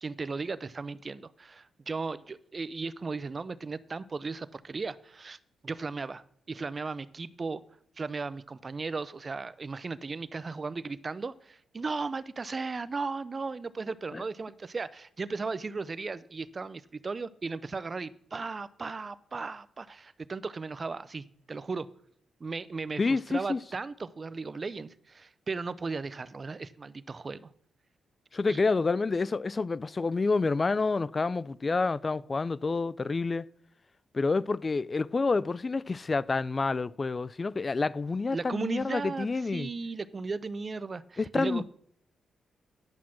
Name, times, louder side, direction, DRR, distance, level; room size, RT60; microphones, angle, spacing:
voice 1, 0.0-5.4 5.6-7.6 8.0-21.9 22.4-27.5 28.5-28.6 38.3-41.6, right 4 dB, 35° right, 0.5 m, -36 dB
voice 2, 23.0-23.6 28.3-33.4 34.1-39.7 41.2-41.7, left 3 dB, 35° left, 0.3 m, -28 dB
10.5 x 5.8 x 6.2 m
cardioid pair, 75°, 0 cm